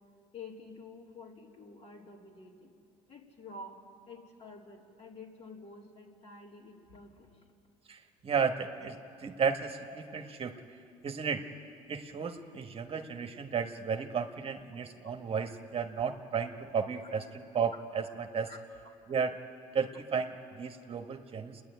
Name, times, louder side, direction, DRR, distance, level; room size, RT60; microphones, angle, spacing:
voice 1, 0.3-2.7 3.1-7.4 15.0-15.1 18.5-18.6, left 3 dB, 45° left, 0 dB, 3.4 m, -49 dB
voice 2, 7.9-10.6 11.0-11.5 11.9-18.6 19.1-19.4 19.7-21.6, right 6 dB, 40° right, 5 dB, 1.3 m, -34 dB
29.0 x 10.5 x 9.3 m, 2.5 s
supercardioid pair, 80°, 14 cm